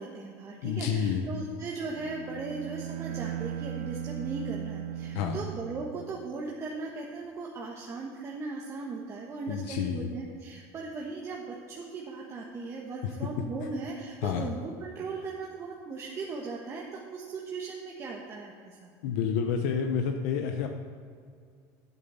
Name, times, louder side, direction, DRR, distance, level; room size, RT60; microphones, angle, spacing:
voice 1, 0.0-18.9, right 3 dB, 35° right, -2 dB, 1.3 m, -38 dB
voice 2, 0.6-1.2 5.1-5.4 9.5-10.1 13.0-13.1 14.2-14.5 19.0-20.7, left 7 dB, 85° left, 5 dB, 0.8 m, -29 dB
Bowed string instrument, 1.7-6.5, right 11 dB, 75° right, 0.6 m, -38 dB
9.1 x 8.3 x 6.8 m, 2.2 s
supercardioid pair, 120°, 9 cm